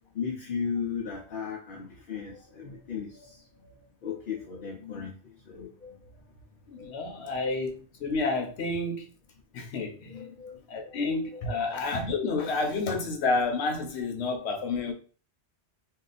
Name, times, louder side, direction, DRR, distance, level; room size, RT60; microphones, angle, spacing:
voice 1, 0.1-6.0 6.8-6.9 10.0-10.6 10.9-11.0 11.4-11.6, left 5 dB, 60° left, 0 dB, 0.8 m, -36 dB
voice 2, 6.7-9.1 9.5-10.2 10.7-14.9, left 3 dB, 80° left, 4 dB, 1.0 m, -30 dB
2.7 x 2.3 x 3.9 m, 0.37 s
omnidirectional pair, 1.1 m